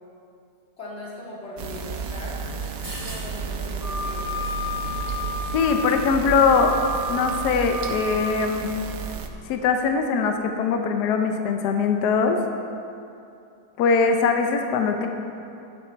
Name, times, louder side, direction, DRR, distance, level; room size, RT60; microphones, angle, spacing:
voice 1, 0.8-2.3 2.8-4.4, left 2 dB, 40° left, -6 dB, 2.7 m, -39 dB
sound 1, 1.6-9.3, right 5 dB, 80° right, 1.3 m, -32 dB
sound 2, 2.5-7.7, equal, 20° right, 2.4 m, -46 dB
Wind instrument woodwind instrument, 3.8-8.3, left 1 dB, 55° right, 3.6 m, -32 dB
voice 2, 5.5-6.7 7.1-8.7 9.5-12.4 13.8-15.1, left 5 dB, 70° left, 5 dB, 1.3 m, -21 dB
12.5 x 7.8 x 4.4 m, 2.6 s
omnidirectional pair, 1.9 m